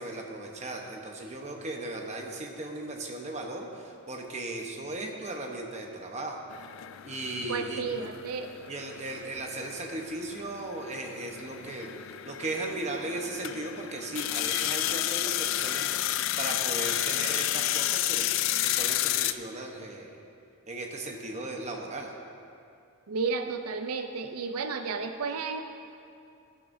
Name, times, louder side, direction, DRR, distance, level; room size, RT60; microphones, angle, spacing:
voice 1, 0.0-6.4 7.0-7.8 8.7-11.9 12.2-18.3 18.6-20.2 20.7-22.1, right 2 dB, 30° right, 1 dB, 1.0 m, -37 dB
sound 1, 6.5-19.3, left 13 dB, 60° left, 0.3 m, -31 dB
voice 2, 7.5-8.5 23.1-25.6, right 4 dB, 85° right, 7 dB, 0.5 m, -32 dB
14.5 x 10.5 x 2.7 m, 2.5 s
head